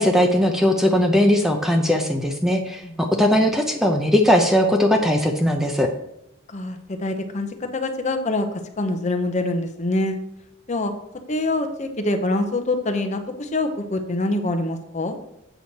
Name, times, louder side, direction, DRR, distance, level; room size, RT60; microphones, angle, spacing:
voice 1, 0.0-5.9, left 1 dB, ahead, 3 dB, 0.6 m, -19 dB
voice 2, 6.5-8.5 8.8-10.2 10.7-10.9 11.3-15.2, left 2 dB, 35° left, 7 dB, 0.8 m, -25 dB
8.1 x 6.3 x 4.2 m, 0.83 s
head